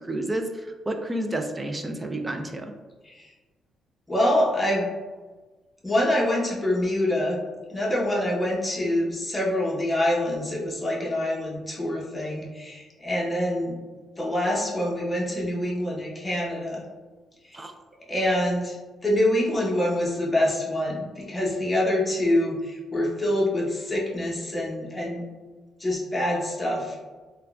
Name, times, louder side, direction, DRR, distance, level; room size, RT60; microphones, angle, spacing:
voice 1, 0.0-2.7 17.5-17.7, right 1 dB, 20° right, 5 dB, 0.3 m, -30 dB
voice 2, 4.1-4.9 5.8-7.4 7.7-13.7 14.2-16.8 17.4-17.6 18.1-18.8 19.0-25.2 25.8-27.0, left 1 dB, 15° left, -4 dB, 0.9 m, -25 dB
3.5 x 2.2 x 2.3 m, 1.3 s
cardioid pair, 90°, 0 cm